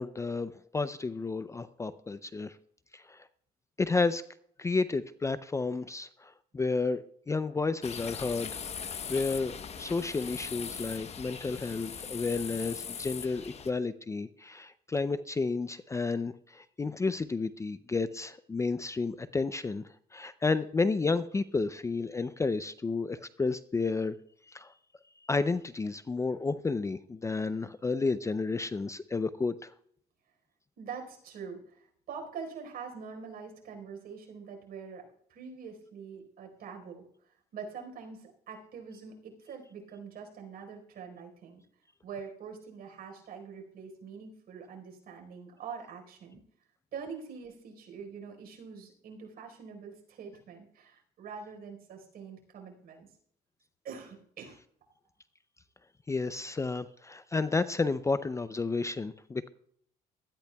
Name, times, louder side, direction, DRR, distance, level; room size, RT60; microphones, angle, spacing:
voice 1, 0.0-2.5 2.9-3.2 3.8-4.2 4.6-8.6 9.1-19.8 20.1-24.2 24.5-24.7 25.3-29.7 56.1-59.5, left 4 dB, 15° left, 14 dB, 0.4 m, -31 dB
sound 1, 7.8-13.7, left 7 dB, 40° left, 1.0 m, -40 dB
voice 2, 30.8-35.0 35.3-37.0 37.5-41.6 42.0-46.4 46.9-53.1 53.8-54.6, right 6 dB, 60° right, 2 dB, 4.4 m, -44 dB
18.5 x 13.5 x 2.3 m, 0.66 s
cardioid pair, 110°, 17 cm